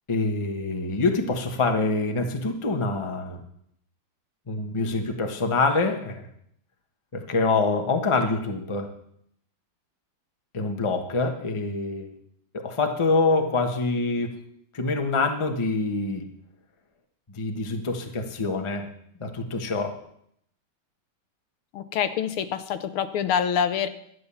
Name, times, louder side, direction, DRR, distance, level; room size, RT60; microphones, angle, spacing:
voice 1, 0.1-3.5 4.5-6.3 7.1-8.9 10.5-12.1 12.5-14.4 14.7-16.2 17.3-18.9 19.2-20.0, left 3 dB, 20° left, 4 dB, 1.0 m, -25 dB
voice 2, 21.7-23.9, left 8 dB, 80° left, 11 dB, 1.7 m, -26 dB
12.0 x 9.4 x 7.0 m, 0.70 s
omnidirectional pair, 2.4 m